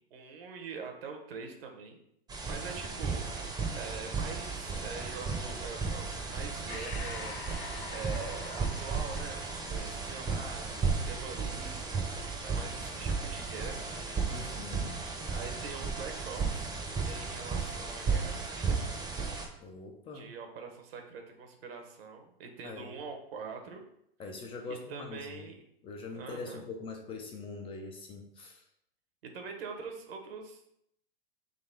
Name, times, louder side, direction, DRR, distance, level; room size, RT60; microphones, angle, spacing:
voice 1, 0.1-2.0 2.4-7.4 7.9-12.0 12.4-13.8 15.3-16.7 17.0-18.8 20.1-23.8 24.7-25.6 26.1-26.6 29.2-30.7, right 5 dB, 75° right, 4 dB, 1.1 m, -44 dB
sound 1, 2.3-19.5, right 4 dB, 15° right, 0.7 m, -34 dB
Breathing, 6.7-11.6, left 6 dB, 70° left, 0.9 m, -47 dB
voice 2, 14.3-15.0 19.6-20.3 22.6-23.0 24.2-25.5 25.8-28.6, left 3 dB, 20° left, 3 dB, 0.4 m, -43 dB
3.9 x 3.1 x 4.3 m, 0.75 s
hypercardioid pair, 130°, 30 cm